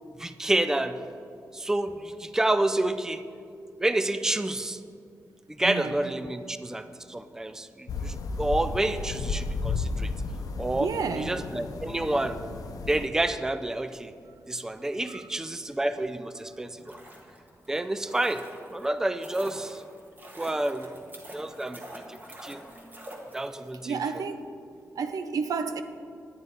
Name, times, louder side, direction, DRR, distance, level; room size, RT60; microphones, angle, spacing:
voice 1, 0.2-1.0 1.5-3.2 3.8-4.8 5.6-10.1 10.6-10.9 11.2-12.4 12.9-14.1 14.5-17.0 17.7-18.4 18.7-19.8 20.4-21.0 21.3-21.8 22.1-22.2 22.4-22.6 23.3-24.0, right 1 dB, 10° right, 0.3 m, -29 dB
voice 2, 5.6-6.0 10.7-11.4 15.1-15.2 23.8-24.4 25.0-25.8, right 5 dB, 85° right, 0.6 m, -31 dB
sound 1, 7.9-13.1, left 3 dB, 90° left, 0.7 m, -33 dB
sound 2, 16.7-23.8 24.1-24.2, right 1 dB, 30° right, 1.5 m, -46 dB
9.9 x 9.7 x 4.7 m
wide cardioid pair, 155°, 6 cm